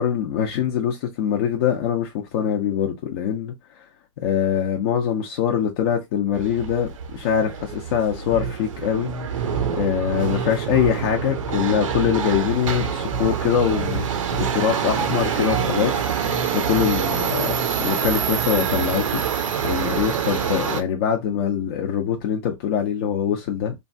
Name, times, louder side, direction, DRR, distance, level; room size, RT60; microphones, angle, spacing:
voice 1, 0.0-3.9 4.2-23.7, left 8 dB, 50° left, 0.8 m, -24 dB
Subway metro underground, 6.3-20.8, right 8 dB, 80° right, 0.7 m, -26 dB
Bass guitar, 8.3-17.9, right 2 dB, 10° left, 0.6 m, -33 dB
3.0 x 2.3 x 2.6 m
hypercardioid pair, 140°, 17 cm